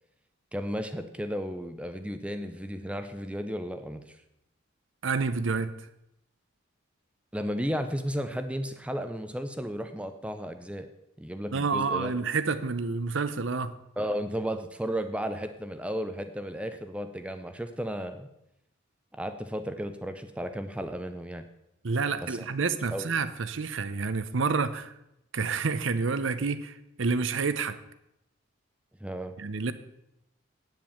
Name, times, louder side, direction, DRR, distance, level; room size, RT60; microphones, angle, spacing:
voice 1, 0.5-4.2 7.3-10.9 11.2-12.1 14.0-18.3 19.1-21.5 22.2-22.5 22.9-23.1 29.0-29.3, equal, 5° right, 8 dB, 0.6 m, -34 dB
voice 2, 5.0-5.7 11.5-13.7 21.8-24.9 25.3-27.8 29.4-29.7, right 4 dB, 75° right, 14 dB, 0.7 m, -29 dB
9.1 x 7.7 x 7.0 m, 0.84 s
head